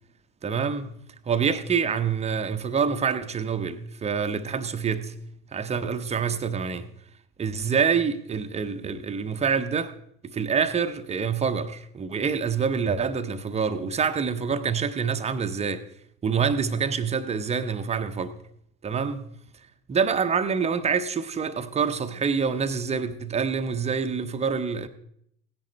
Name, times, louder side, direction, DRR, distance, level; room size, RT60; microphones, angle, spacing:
voice 1, 0.4-0.9 1.3-5.2 5.5-6.9 7.4-9.9 10.2-15.8 16.2-18.3 18.8-19.3 19.9-24.9, right 6 dB, 15° right, 0.7 m, -26 dB
16.5 x 10.5 x 3.2 m
figure-of-eight pair, 70°, 45 cm